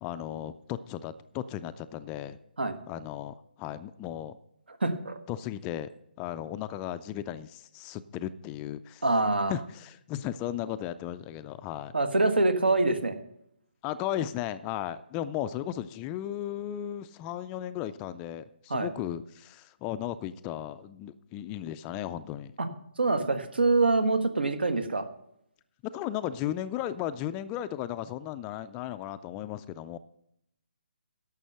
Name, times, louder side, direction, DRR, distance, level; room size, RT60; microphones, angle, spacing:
voice 1, 0.0-2.4 2.9-4.4 5.3-5.9 6.2-9.0 9.5-11.9 13.8-22.5 25.8-30.0, left 11 dB, 15° left, 13 dB, 0.3 m, -35 dB
voice 2, 4.7-5.2 9.0-9.5 11.9-13.2 18.7-18.9 22.6-22.7 23.0-25.1, right 3 dB, 75° right, 8 dB, 1.5 m, -25 dB
11.0 x 6.9 x 6.7 m, 0.76 s
figure-of-eight pair, 145°, 6 cm